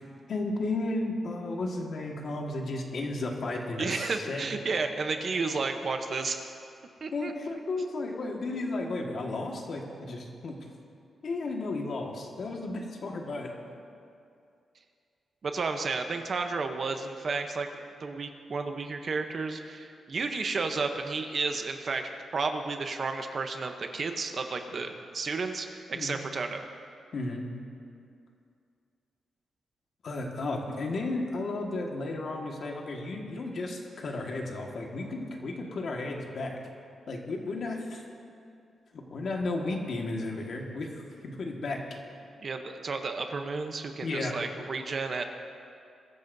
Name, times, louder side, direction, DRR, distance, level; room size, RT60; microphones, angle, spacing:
voice 1, 0.3-4.5 7.1-10.6 11.2-13.5 25.9-26.2 27.1-27.4 30.0-36.6 37.1-38.0 38.9-40.9 41.2-41.8 44.0-44.3, left 2 dB, 50° left, 0 dB, 1.6 m, -33 dB
voice 2, 3.8-6.5 7.0-7.3 15.4-26.6 42.4-45.2, right 4 dB, 40° right, 6 dB, 0.8 m, -32 dB
21.5 x 13.5 x 2.7 m, 2.5 s
wide cardioid pair, 165°, 0 cm